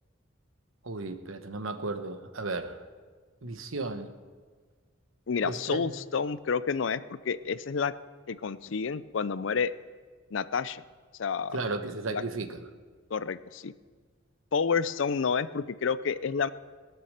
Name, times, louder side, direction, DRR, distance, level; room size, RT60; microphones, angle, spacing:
voice 1, 0.8-2.8 3.4-4.1 5.4-5.9 11.5-12.7, right 3 dB, 90° right, 8 dB, 1.1 m, -34 dB
voice 2, 5.3-7.9 8.3-9.7 10.3-10.8 11.2-11.6 12.1-12.2 13.1-13.7 14.5-16.5, left 5 dB, 70° left, 15 dB, 0.5 m, -29 dB
20.5 x 7.0 x 6.5 m, 1.5 s
head